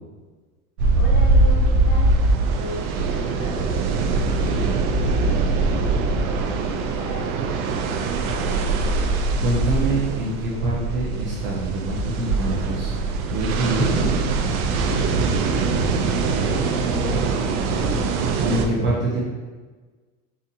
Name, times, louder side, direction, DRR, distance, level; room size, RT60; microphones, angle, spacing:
sound 1, 0.8-18.7, right 3 dB, 85° right, 0.6 m, -22 dB
voice 1, 1.0-2.1 2.6-6.4 7.0-8.2 14.9-15.1 16.3-17.4 17.7-18.0, equal, 40° left, -5 dB, 1.2 m, -37 dB
voice 2, 9.4-13.0 13.3-14.1 18.4-19.2, right 2 dB, 25° right, -5 dB, 0.6 m, -25 dB
4.1 x 2.6 x 2.4 m, 1.3 s
supercardioid pair, 140°, 42 cm